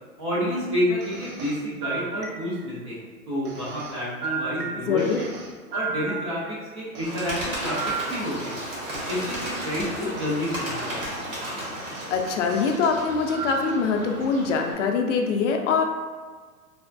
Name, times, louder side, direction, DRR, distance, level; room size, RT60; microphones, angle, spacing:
voice 1, 0.2-5.3 5.7-7.8 8.1-8.6 9.1-11.0 11.2-11.5, equal, 25° right, -8 dB, 0.3 m, -29 dB
sound 1, 1.0-2.8 3.4-6.6 6.9-9.6 10.2-10.4 11.0-11.2 11.6-12.7 13.3-13.9, right 5 dB, 85° right, 0.6 m, -35 dB
voice 2, 4.9-5.2 12.1-15.8, left 5 dB, 55° left, 3 dB, 0.5 m, -23 dB
Bird, 7.0-14.7, equal, 60° right, 1.3 m, -34 dB
3.3 x 2.1 x 2.5 m, 1.5 s
hypercardioid pair, 120°, 44 cm